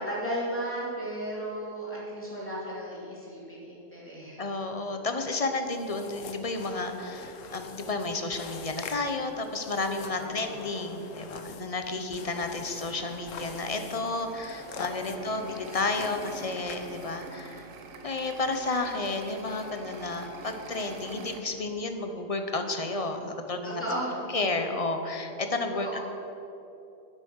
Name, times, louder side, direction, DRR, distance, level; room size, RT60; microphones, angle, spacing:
voice 1, 0.0-4.4 10.1-10.6 15.1-15.2 23.6-24.2 25.7-26.0, right 1 dB, 10° left, -7 dB, 3.0 m, -35 dB
voice 2, 4.4-17.7 18.0-23.8 24.3-26.0, left 3 dB, 35° left, 6 dB, 0.7 m, -32 dB
sound 1, 5.7-17.3, left 5 dB, 90° left, 1.2 m, -45 dB
sound 2, 12.5-21.4, right 4 dB, 90° right, 1.2 m, -46 dB
9.8 x 8.2 x 6.5 m, 3.0 s
omnidirectional pair, 1.3 m